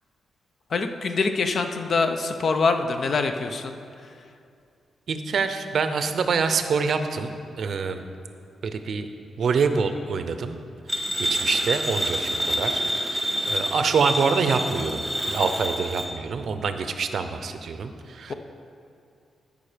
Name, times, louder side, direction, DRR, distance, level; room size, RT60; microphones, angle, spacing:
voice 1, 0.7-3.8 18.3-18.4, left 4 dB, 55° left, 7 dB, 0.6 m, -24 dB
voice 2, 5.1-8.0 8.6-9.1 9.4-10.6 11.2-18.3, right 5 dB, 60° right, 8 dB, 0.6 m, -26 dB
sound 1, 10.9-16.1, equal, 10° left, 1.3 m, -27 dB
13.0 x 5.3 x 5.0 m, 2.5 s
cardioid pair, 120°, 0 cm